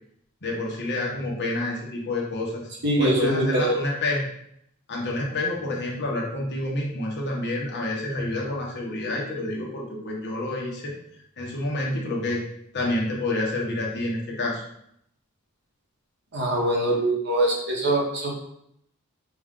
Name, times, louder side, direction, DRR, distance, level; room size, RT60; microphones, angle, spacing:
voice 1, 0.4-2.7 3.0-4.2 4.9-10.9 11.4-12.4 12.7-14.6, left 2 dB, 50° left, -2 dB, 1.1 m, -28 dB
voice 2, 2.8-3.7 16.3-18.4, right 1 dB, 55° right, -1 dB, 1.2 m, -23 dB
5.9 x 2.4 x 3.7 m, 0.71 s
head